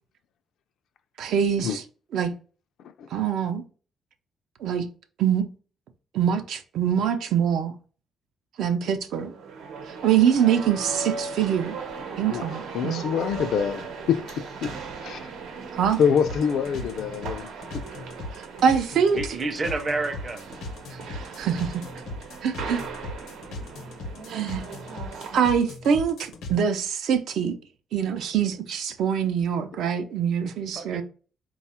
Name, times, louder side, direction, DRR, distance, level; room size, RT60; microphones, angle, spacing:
voice 1, 1.2-1.8 2.1-2.3 3.1-3.6 4.6-4.8 5.2-5.5 6.1-7.7 8.6-9.3 9.9-11.8 12.2-13.0 15.7-16.0 18.3-19.2 20.9-21.8 22.4-22.8 24.3-24.6 25.3-27.6 27.9-31.0, right 8 dB, 70° right, 0.5 m, -24 dB
sound 1, 9.1-25.5, right 4 dB, 90° right, 0.9 m, -38 dB
voice 2, 12.3-14.7 15.0-15.3 16.0-17.8, left 7 dB, 70° left, 0.4 m, -26 dB
sound 2, 15.8-26.6, left 2 dB, 85° left, 0.8 m, -38 dB
voice 3, 19.1-20.4 20.9-21.2 30.7-31.0, right 3 dB, 30° right, 0.6 m, -30 dB
4.0 x 2.3 x 4.2 m
cardioid pair, 140°, 0 cm